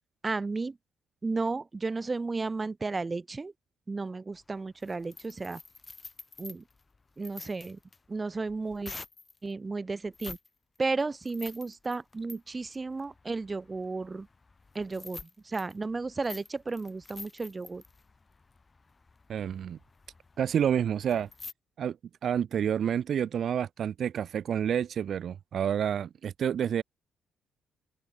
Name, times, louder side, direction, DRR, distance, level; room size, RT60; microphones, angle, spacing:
voice 1, 0.2-0.8 1.2-3.5 3.9-5.6 6.4-6.6 7.2-7.8 8.1-8.9 9.4-10.4 10.8-14.3 14.7-17.8, right 3 dB, 25° right, 2.1 m, -33 dB
sound 1, 4.3-9.4 10.1-10.5 10.8-21.5, left 3 dB, 25° left, 3.3 m, -49 dB
voice 2, 19.3-19.8 20.4-21.3 21.8-22.0 22.2-26.8, right 8 dB, 60° right, 0.9 m, -29 dB
open air
cardioid pair, 90°, 0 cm